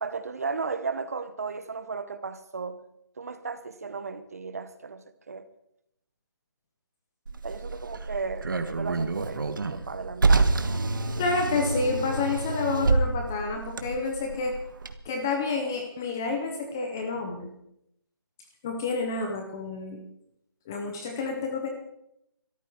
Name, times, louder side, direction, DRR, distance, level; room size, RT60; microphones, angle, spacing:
voice 1, 0.0-2.8 3.2-5.5 7.4-10.7, right 4 dB, 35° right, 1.1 m, -35 dB
Car, 7.3-14.9, right 3 dB, 55° right, 1.6 m, -27 dB
voice 2, 11.2-14.5 15.0-17.5 18.6-20.0 20.7-21.7, left 4 dB, 10° left, 0.6 m, -29 dB
23.0 x 13.5 x 4.6 m
figure-of-eight pair, 175°, 13 cm